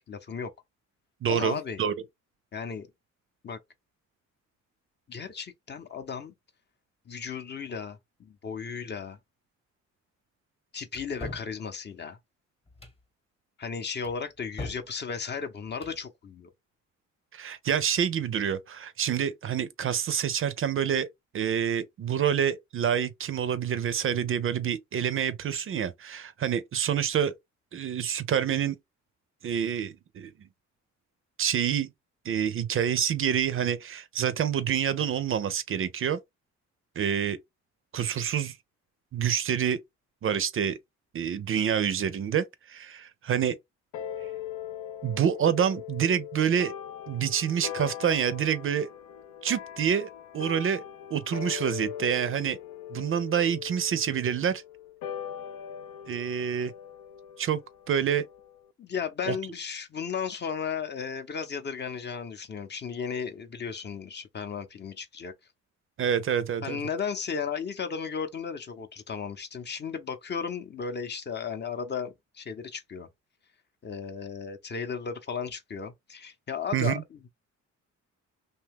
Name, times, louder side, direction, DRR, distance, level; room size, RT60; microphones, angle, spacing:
voice 1, 0.1-0.5 1.3-1.8 2.5-2.9 3.4-3.6 5.1-6.3 7.1-9.2 10.7-12.2 13.6-16.5 58.8-65.3 66.6-73.1 73.8-77.3, left 6 dB, 35° left, 0.6 m, -35 dB
voice 2, 1.2-1.9 17.3-21.1 21.3-27.3 27.7-28.8 29.4-30.3 31.4-31.9 32.3-36.2 37.0-37.4 37.9-38.6 39.1-39.8 40.2-40.8 41.1-43.6 45.0-46.7 47.1-48.9 49.4-50.1 50.3-50.8 51.1-52.6 52.9-54.6 56.1-56.7 57.4-57.6 57.9-58.2 59.3-59.4 66.0-66.8 76.7-77.0, right 8 dB, 45° right, 0.5 m, -27 dB
sound 1, 10.9-11.5 12.7-13.0 14.0-14.9 15.6-16.0, left 2 dB, 20° left, 0.9 m, -40 dB
sound 2, 43.9-58.7, left 9 dB, 80° left, 0.5 m, -40 dB
2.7 x 2.3 x 3.3 m
cardioid pair, 90°, 30 cm